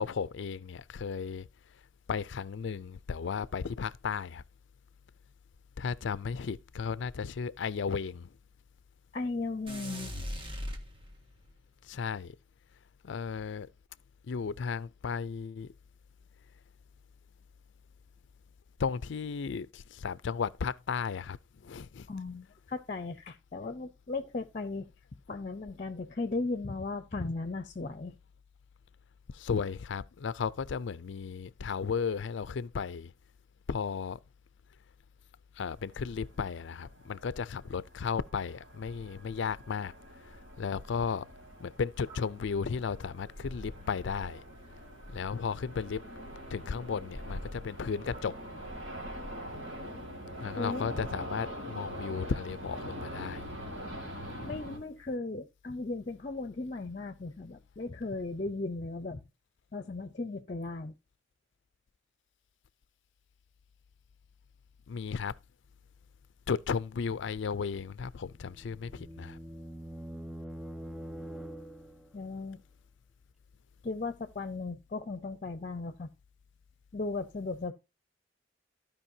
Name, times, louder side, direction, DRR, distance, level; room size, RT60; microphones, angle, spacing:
voice 1, 0.0-1.5 2.1-4.4 5.8-8.3 11.9-12.3 13.0-13.7 14.3-15.7 18.8-21.4 21.6-22.1 29.3-33.1 33.7-34.2 35.6-39.9 40.6-41.2 41.6-44.4 45.1-46.0 46.5-48.3 50.4-53.4 64.9-65.3 66.5-69.4, left 6 dB, 70° left, 0.4 m, -34 dB
voice 2, 9.1-10.1 22.1-24.8 25.3-28.1 50.6-50.9 54.4-59.2 59.7-60.9 72.1-72.6 73.8-76.1 76.9-77.7, left 3 dB, 40° left, 0.7 m, -36 dB
sound 1, 9.7-11.4, equal, 30° right, 1.6 m, -39 dB
sound 2, 35.8-54.8, equal, 85° right, 3.1 m, -44 dB
sound 3, 68.3-72.2, right 1 dB, 5° right, 0.3 m, -44 dB
15.0 x 5.2 x 2.8 m
head